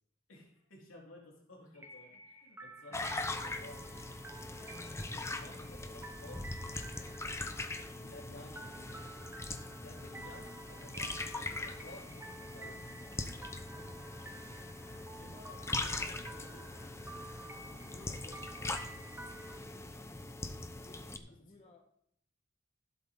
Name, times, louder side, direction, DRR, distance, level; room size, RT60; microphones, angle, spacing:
voice 1, 0.3-4.0 4.5-6.5 7.8-8.9 9.7-12.9 16.3-16.7 17.5-17.6 21.5-21.6, left 1 dB, 85° left, -3 dB, 3.8 m, -55 dB
sound 1, 1.7-19.6, right 2 dB, 10° right, 1.3 m, -52 dB
sound 2, 2.9-21.2, left 2 dB, 15° left, 0.7 m, -41 dB
voice 2, 13.3-14.0 14.3-14.6 15.1-17.0 17.5-18.8 20.7-21.9, left 2 dB, 30° left, 0 dB, 1.5 m, -58 dB
15.0 x 7.8 x 3.8 m, 0.70 s
head